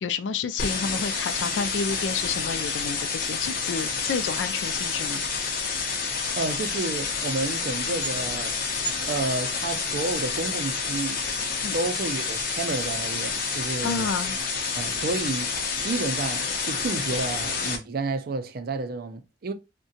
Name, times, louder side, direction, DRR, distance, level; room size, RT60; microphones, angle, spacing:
voice 1, 0.0-5.2 11.6-11.8 13.5-14.4, left 5 dB, 80° left, 0.4 m, -30 dB
sound 1, 0.6-17.8, left 5 dB, 55° left, 0.7 m, -29 dB
voice 2, 6.3-8.6 9.1-11.2 11.7-14.1 14.8-15.5 15.8-19.5, right 3 dB, 55° right, 0.5 m, -30 dB
3.6 x 2.2 x 2.6 m
head